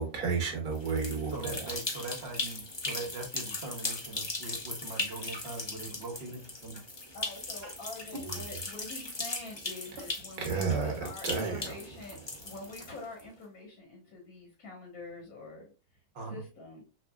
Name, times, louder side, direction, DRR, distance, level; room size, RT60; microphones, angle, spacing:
voice 1, 0.0-1.6 8.2-8.3 10.4-10.9 11.2-11.7, right 5 dB, 80° right, 1.6 m, -31 dB
sound 1, 0.7-13.2, left 2 dB, 25° left, 0.6 m, -38 dB
voice 2, 1.3-6.8 7.6-7.7 16.1-16.4, right 3 dB, 45° right, 1.2 m, -41 dB
voice 3, 7.1-16.8, left 3 dB, 80° left, 1.9 m, -46 dB
5.8 x 2.5 x 2.3 m
omnidirectional pair, 1.6 m